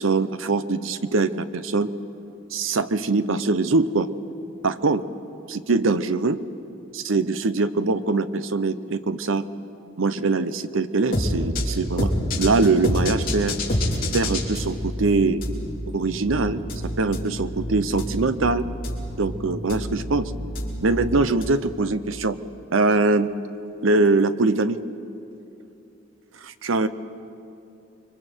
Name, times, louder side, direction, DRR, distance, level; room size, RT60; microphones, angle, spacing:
voice 1, 0.0-1.9 2.5-4.1 4.6-5.0 5.5-6.4 6.9-9.4 10.0-12.1 12.4-13.5 14.1-15.4 15.9-16.6 17.0-18.6 19.2-20.3 20.8-22.4 22.7-23.3 23.8-24.8 26.4-26.9, right 3 dB, 75° right, 12 dB, 0.8 m, -22 dB
sound 1, 11.1-21.4, left 1 dB, 45° left, 3.9 m, -27 dB
29.0 x 23.5 x 4.5 m, 2.7 s
head